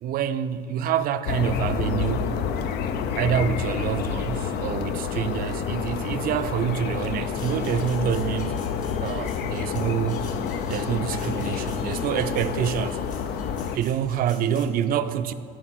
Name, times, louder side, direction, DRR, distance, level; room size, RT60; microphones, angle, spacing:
voice 1, 0.0-2.4 3.1-8.6 9.0-10.3 10.7-13.0 13.7-15.3, right 9 dB, 60° right, 0.4 m, -27 dB
sound 1, 1.3-13.8, left 7 dB, 75° left, 0.5 m, -29 dB
sound 2, 7.3-14.7, left 3 dB, 50° left, 1.2 m, -47 dB
10.0 x 4.4 x 5.9 m
cardioid pair, 110°, 17 cm